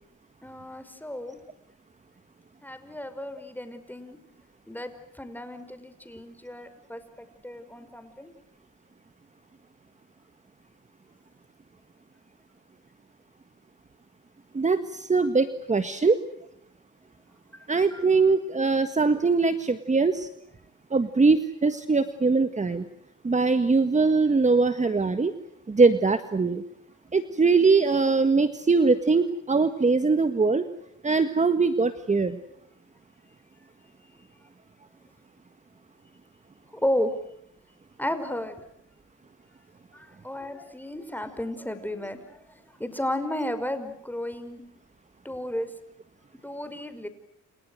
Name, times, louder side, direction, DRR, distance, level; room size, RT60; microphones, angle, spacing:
voice 1, 0.4-1.4 2.6-4.2 4.7-8.3 17.5-18.1 36.7-37.1 38.0-38.6 39.9-44.6 45.2-45.7 46.4-47.1, left 1 dB, 5° left, 10 dB, 5.4 m, -33 dB
voice 2, 14.5-16.2 17.7-20.3 20.9-22.9 23.2-25.3 25.7-26.6 27.1-30.7 31.0-32.4, right 4 dB, 25° right, 10 dB, 1.7 m, -22 dB
30.0 x 29.5 x 6.4 m, 0.72 s
cardioid pair, 90°, 30 cm